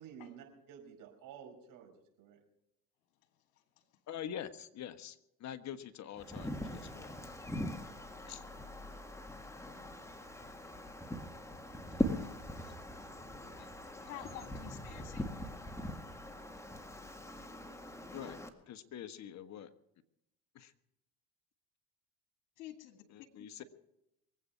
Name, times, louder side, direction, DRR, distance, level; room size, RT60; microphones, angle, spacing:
voice 1, 0.0-2.4, right 8 dB, 55° right, 1 dB, 5.2 m, -52 dB
voice 2, 4.1-7.1 8.2-8.4 18.1-18.4 18.7-19.7 20.5-20.7 23.1-23.6, left 9 dB, 45° left, 10 dB, 1.4 m, -45 dB
Wind, 6.2-18.5, left 1 dB, 5° left, 1.8 m, -41 dB
voice 3, 14.0-15.3 22.6-23.0 23.4-23.6, left 12 dB, 75° left, 8 dB, 1.9 m, -49 dB
23.5 x 8.5 x 5.8 m, 0.83 s
hypercardioid pair, 80°, 38 cm